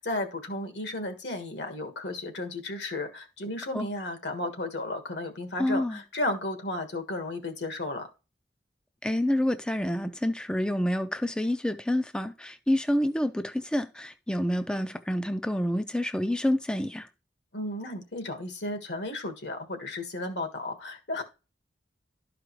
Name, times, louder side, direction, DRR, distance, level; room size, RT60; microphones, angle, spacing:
voice 1, 0.0-8.1 17.5-21.2, left 2 dB, 80° left, 1.5 m, -34 dB
voice 2, 5.6-6.0 9.0-17.1, left 1 dB, 5° left, 0.4 m, -28 dB
12.0 x 5.0 x 3.1 m
head